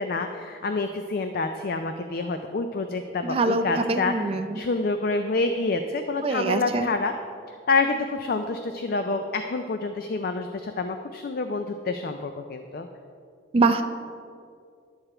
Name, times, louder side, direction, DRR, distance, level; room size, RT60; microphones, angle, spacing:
voice 1, 0.0-4.1 4.5-7.1 7.7-12.9, left 3 dB, 55° left, 7 dB, 0.4 m, -27 dB
voice 2, 3.2-4.6 6.2-6.9 13.5-13.8, right 3 dB, 30° right, 6 dB, 0.4 m, -24 dB
11.0 x 6.8 x 4.3 m, 2.3 s
head